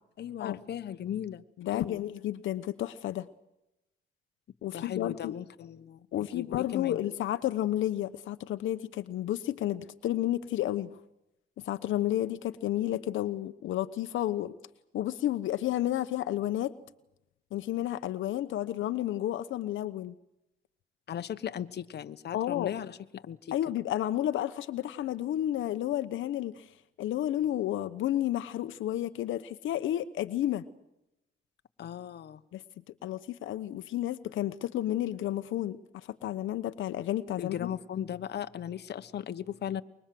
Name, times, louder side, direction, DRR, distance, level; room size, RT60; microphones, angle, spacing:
voice 1, 0.2-1.4 1.7-2.0 4.7-7.0 21.1-23.5 31.8-32.4 37.4-39.8, left 9 dB, 55° left, 11 dB, 1.2 m, -37 dB
voice 2, 1.6-3.3 4.6-5.3 6.1-10.9 11.6-14.5 14.9-16.7 17.5-20.1 22.3-22.7 23.5-26.7 27.0-30.7 32.5-32.6 33.0-37.7, left 13 dB, 80° left, 11 dB, 1.1 m, -31 dB
24.5 x 23.0 x 7.8 m, 0.88 s
cardioid pair, 90°, 20 cm